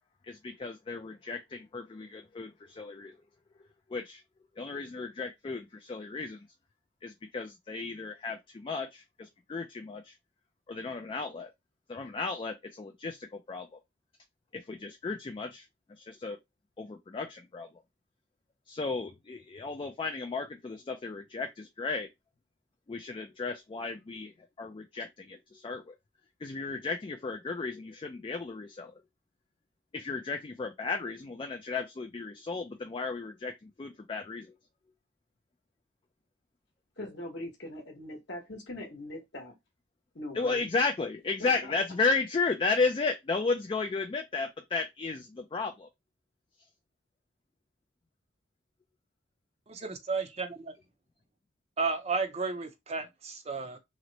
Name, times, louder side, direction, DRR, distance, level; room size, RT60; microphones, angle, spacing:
voice 1, 0.3-3.2 3.9-4.2 4.6-6.5 7.0-10.1 10.7-11.5 11.9-13.8 14.5-15.7 16.0-16.4 16.8-17.7 18.7-22.1 22.9-24.3 24.6-26.0 26.4-29.0 29.9-34.5 40.3-45.9, left 4 dB, 25° left, 0.3 m, -34 dB
voice 2, 37.0-39.5 40.1-40.7 41.4-41.7, left 1 dB, 60° left, 1.0 m, -41 dB
voice 3, 49.7-50.7 51.8-53.8, right 4 dB, 30° right, 0.5 m, -33 dB
3.0 x 2.0 x 3.8 m
head